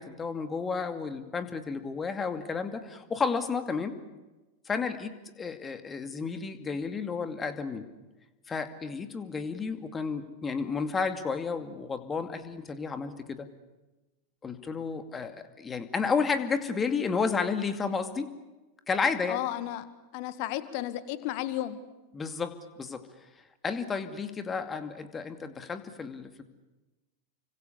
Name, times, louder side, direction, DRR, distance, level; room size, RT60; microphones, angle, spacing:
voice 1, 0.0-3.9 4.7-7.9 8.5-13.5 14.4-18.3 18.9-19.4 22.1-23.0 23.6-26.4, left 5 dB, 20° left, 8 dB, 2.4 m, -32 dB
voice 2, 19.3-19.9 20.1-21.8, left 14 dB, 45° left, 13 dB, 1.9 m, -33 dB
30.0 x 25.0 x 7.0 m, 1.1 s
figure-of-eight pair, 90°, 0 cm